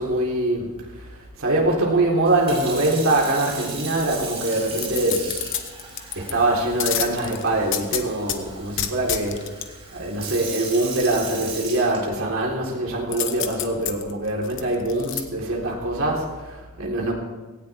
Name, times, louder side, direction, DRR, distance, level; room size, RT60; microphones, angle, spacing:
voice 1, 0.0-5.3 6.2-9.4 9.9-17.1, right 2 dB, 70° right, -2 dB, 3.7 m, -23 dB
Sink (filling or washing) / Fill (with liquid), 2.2-12.5 13.1-13.4, right 4 dB, 30° right, 4.2 m, -37 dB
sound 1, 4.8-6.3 6.8-8.4 8.8-9.7 13.1-15.2 15.7-15.8, left 10 dB, 60° left, 1.1 m, -28 dB
18.0 x 17.0 x 3.5 m, 1.2 s
head